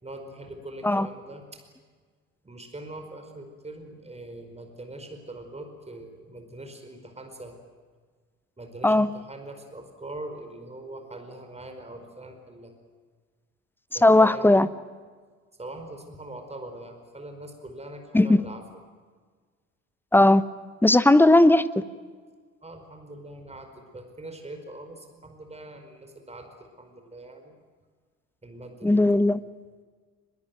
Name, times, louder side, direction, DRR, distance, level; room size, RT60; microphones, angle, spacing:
voice 1, 0.0-1.6 2.4-7.6 8.6-12.7 13.9-14.5 15.6-18.6 22.6-27.5 28.4-29.2, right 1 dB, 15° right, 4.8 m, -42 dB
voice 2, 14.0-14.7 18.1-18.4 20.1-20.4 20.8-21.7 28.8-29.4, left 2 dB, 5° left, 0.9 m, -17 dB
23.0 x 22.0 x 9.4 m
figure-of-eight pair, 50°, 39 cm